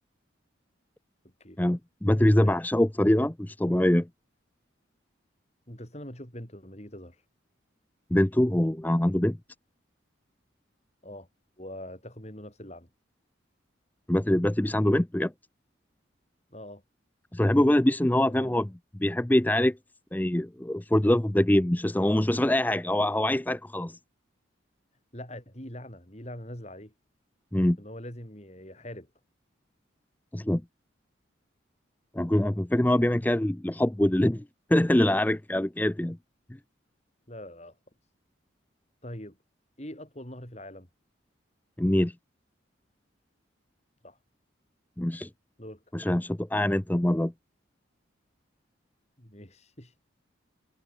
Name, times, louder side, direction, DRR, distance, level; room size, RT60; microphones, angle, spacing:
voice 1, 1.6-4.1 8.1-9.4 14.1-15.3 17.3-18.7 19.0-19.8 20.1-24.0 27.5-27.8 30.3-30.6 32.1-34.4 34.7-36.2 41.8-42.1 45.0-45.3 45.9-47.3, left 1 dB, 10° left, 0.5 m, -24 dB
voice 2, 5.7-7.2 11.0-11.3 11.6-12.9 16.5-16.8 18.2-18.6 25.1-26.9 27.8-29.1 37.3-37.8 38.0-38.1 39.0-39.4 39.8-40.9 44.0-44.2 45.6-45.8 49.2-50.0, left 1 dB, 35° left, 6.2 m, -43 dB
head